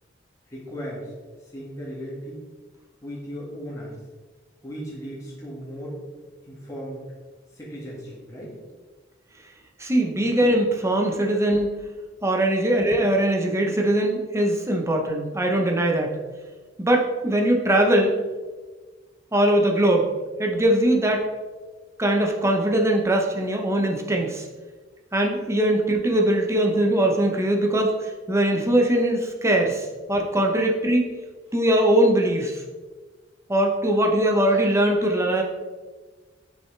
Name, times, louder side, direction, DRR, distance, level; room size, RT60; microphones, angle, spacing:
voice 1, 0.5-1.1 1.5-2.4 3.0-4.0 4.6-6.0 6.4-7.0 7.5-8.6, equal, 15° left, -6 dB, 1.9 m, -36 dB
voice 2, 9.8-11.7 12.2-16.2 16.8-18.2 19.3-20.1 20.4-21.3 22.0-24.5 25.1-31.1 31.5-32.6 33.5-35.4, right 1 dB, 15° right, 1 dB, 0.8 m, -21 dB
6.3 x 5.7 x 3.3 m, 1.3 s
head